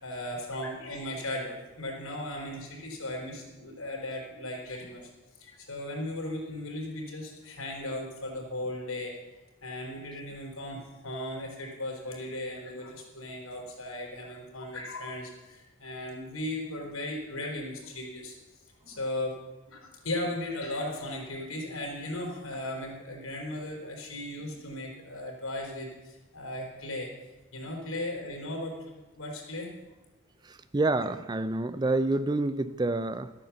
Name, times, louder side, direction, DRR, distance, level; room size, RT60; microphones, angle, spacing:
voice 1, 0.0-5.1 5.4-9.1 9.6-18.3 18.9-19.4 19.7-27.1 27.5-29.7, left 1 dB, 85° left, 0 dB, 3.8 m, -37 dB
voice 2, 30.4-33.3, right 2 dB, 20° right, 13 dB, 0.4 m, -28 dB
13.0 x 8.9 x 7.0 m, 1.1 s
head